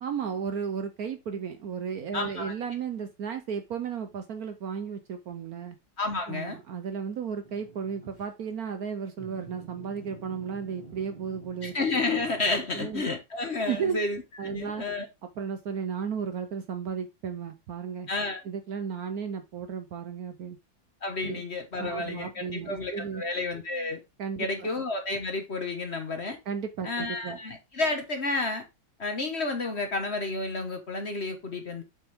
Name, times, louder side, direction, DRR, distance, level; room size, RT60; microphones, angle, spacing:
voice 1, 0.0-5.8 6.3-11.8 12.7-13.0 13.7-14.0 14.4-14.8 15.4-18.1 18.4-20.6 21.2-21.4 21.8-23.2 24.2-24.7 26.5-27.4, right 6 dB, 60° right, 1.1 m, -34 dB
voice 2, 2.1-2.5 6.0-6.6 11.6-14.2 14.5-15.0 18.1-18.4 21.0-24.0 24.4-26.4 26.8-28.7 29.0-31.8, left 3 dB, 40° left, 1.2 m, -31 dB
sound 1, 7.4-8.3 9.2-12.7, right 4 dB, 25° right, 2.4 m, -48 dB
7.1 x 6.1 x 3.5 m
omnidirectional pair, 2.0 m